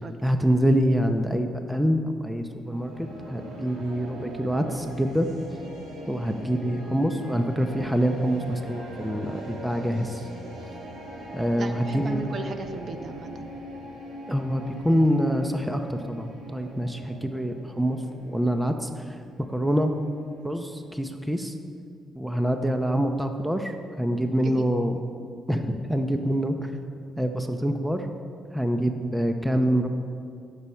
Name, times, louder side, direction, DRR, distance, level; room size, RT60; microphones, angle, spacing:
voice 1, 0.2-5.3 6.1-10.2 11.3-12.3 14.3-18.9 19.5-19.9 20.4-21.5 22.1-25.0 25.5-26.5 27.2-28.1 28.5-29.9, equal, 5° right, 6 dB, 0.7 m, -25 dB
sound 1, 2.6-20.8, right 1 dB, 85° right, 2.9 m, -41 dB
voice 2, 11.6-13.4 24.4-24.6, right 3 dB, 50° right, 6 dB, 0.9 m, -36 dB
14.5 x 7.0 x 4.4 m, 2.3 s
cardioid pair, 90°, 0 cm